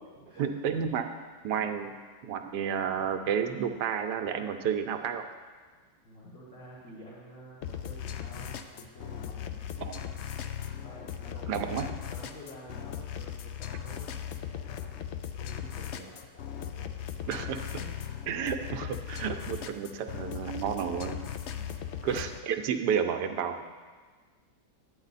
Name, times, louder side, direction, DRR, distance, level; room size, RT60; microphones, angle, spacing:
voice 1, 0.4-1.1 1.4-1.9 2.2-5.2 9.8-10.1 11.5-11.9 17.3-17.6 18.3-21.2 22.0-23.6, right 7 dB, 80° right, 7 dB, 1.3 m, -31 dB
voice 2, 6.0-9.6 10.7-14.9 15.3-16.1 16.5-16.9 17.8-17.9 21.5-21.8, left 1 dB, 50° left, -7 dB, 2.0 m, -49 dB
sound 1, 7.6-22.4, left 9 dB, 75° left, 0.6 m, -38 dB
10.0 x 9.5 x 4.1 m, 1.5 s
omnidirectional pair, 1.8 m